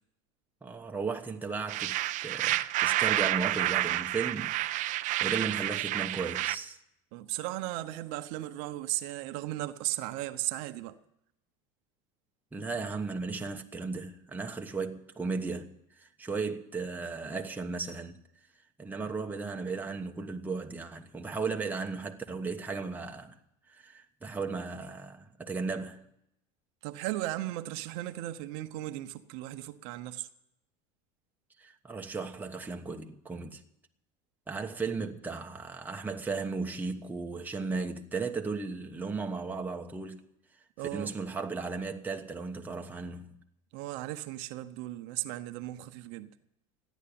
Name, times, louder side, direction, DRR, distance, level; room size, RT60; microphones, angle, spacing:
voice 1, 0.6-6.8 12.5-15.7 16.0-18.2 18.8-23.4 23.7-26.0 31.6-33.6 34.5-40.2 40.9-43.4, right 4 dB, 10° right, 1.2 m, -36 dB
sound 1, 1.7-6.6, right 16 dB, 45° right, 0.6 m, -29 dB
voice 2, 7.1-11.0 26.8-30.3 40.8-41.1 43.7-46.3, right 16 dB, 65° right, 0.9 m, -36 dB
14.5 x 10.5 x 8.7 m
supercardioid pair, 125°, 17 cm